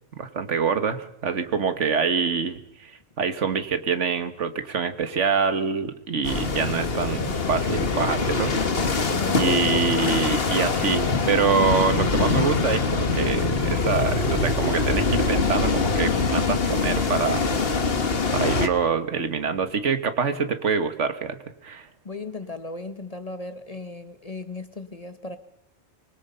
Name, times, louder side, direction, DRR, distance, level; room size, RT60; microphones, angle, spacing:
voice 1, 0.2-9.0 9.3-17.5 18.3-21.4 21.6-21.9, right 5 dB, 65° right, 10 dB, 1.7 m, -25 dB
sound 1, 6.2-18.7, left 4 dB, 50° left, 1.6 m, -24 dB
voice 2, 9.1-9.4 22.0-25.4, left 2 dB, 30° left, 10 dB, 1.2 m, -36 dB
25.5 x 20.5 x 5.6 m, 0.81 s
omnidirectional pair, 1.3 m